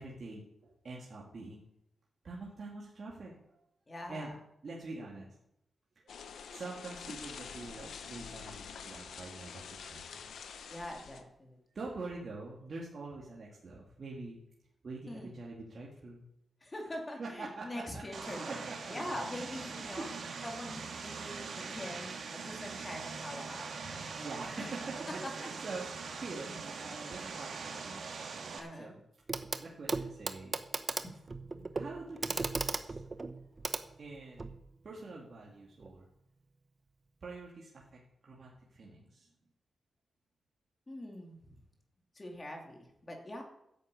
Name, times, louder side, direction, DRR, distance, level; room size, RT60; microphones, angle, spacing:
voice 1, 0.0-1.6 2.2-3.4 4.1-4.3 4.6-5.3 6.5-10.2 11.7-14.4 14.8-16.2 17.2-19.2 19.8-20.1 23.9-28.1 28.8-29.0 29.6-30.6 31.7-33.0 34.0-34.5 34.8-36.0 37.2-37.8 38.2-39.3, right 3 dB, 50° right, -4 dB, 2.5 m, -45 dB
voice 2, 3.9-4.3 10.7-11.6 15.1-15.3 16.6-20.1 20.4-24.2 24.6-24.7 25.1-25.3 28.6-29.0 31.0-31.1 31.4-31.7 40.9-41.4 42.1-43.4, left 1 dB, 25° left, 1 dB, 2.7 m, -43 dB
sound 1, 6.1-11.2, left 6 dB, 85° left, 1.1 m, -47 dB
Vehicle, 18.1-28.6, right 5 dB, 70° right, 2.2 m, -42 dB
Clock, 29.3-29.6 29.9-34.6 35.8-35.9, right 3 dB, 35° right, 1.0 m, -37 dB
10.5 x 8.2 x 8.4 m, 0.80 s
cardioid pair, 90°, 0 cm